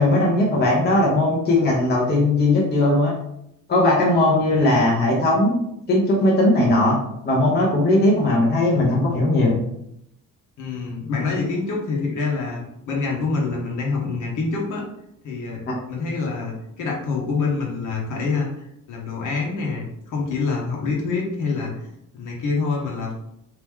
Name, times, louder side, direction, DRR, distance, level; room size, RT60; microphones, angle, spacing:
voice 1, 0.0-3.1 3.7-5.6 5.9-7.0 7.2-9.6, left 2 dB, 30° left, -3 dB, 0.8 m, -18 dB
voice 2, 4.5-4.8 10.6-14.8 15.2-15.6 15.9-21.9 22.1-23.1, left 4 dB, 60° left, -1 dB, 1.2 m, -26 dB
3.1 x 2.9 x 3.6 m, 0.78 s
cardioid pair, 150°, 34 cm